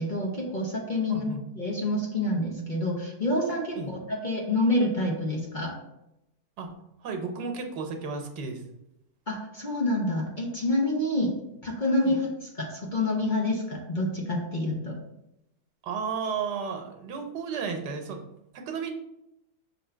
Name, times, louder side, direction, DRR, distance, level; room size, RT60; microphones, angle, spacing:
voice 1, 0.0-1.2 1.6-5.7 9.3-15.0, left 1 dB, 40° left, -1 dB, 0.8 m, -28 dB
voice 2, 1.1-1.4 3.8-3.9 6.6-6.7 7.0-8.6 12.0-12.2 15.8-18.2 18.5-18.9, right 5 dB, 85° right, 4 dB, 1.5 m, -33 dB
6.2 x 2.8 x 5.5 m, 0.86 s
omnidirectional pair, 1.7 m